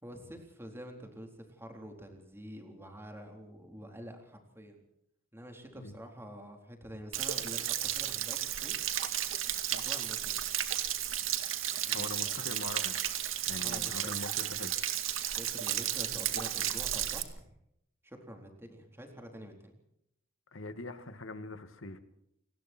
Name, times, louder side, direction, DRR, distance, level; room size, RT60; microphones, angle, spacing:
voice 1, 0.0-4.8 5.3-8.8 9.7-10.3 11.9-12.6 13.6-14.1 15.3-17.5 18.0-19.8, equal, 10° right, 4 dB, 4.0 m, -47 dB
Stream / Splash splatter / Trickle dribble, 7.1-17.2, right 11 dB, 75° right, 2.2 m, -33 dB
voice 2, 11.9-13.2 13.5-14.8 20.5-22.0, left 2 dB, 75° left, 10 dB, 2.3 m, -42 dB
29.5 x 19.5 x 4.6 m, 0.77 s
head